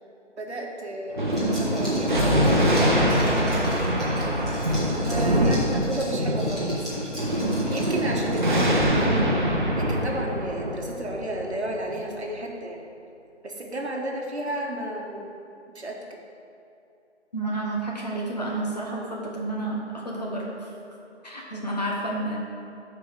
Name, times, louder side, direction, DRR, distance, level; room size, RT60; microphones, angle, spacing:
voice 1, 0.4-2.1 3.0-3.6 4.9-6.8 7.7-9.3 9.8-12.8 13.4-15.3 15.7-16.0, right 1 dB, 65° right, 0 dB, 1.3 m, -32 dB
Thunder, 1.1-12.0, equal, 40° right, 0.9 m, -24 dB
Liquid, 1.3-8.7, equal, ahead, 0.7 m, -41 dB
voice 2, 17.3-20.7 21.2-22.4, right 2 dB, 35° left, -3 dB, 1.1 m, -30 dB
13.0 x 4.6 x 3.5 m, 2.7 s
figure-of-eight pair, 165°, 36 cm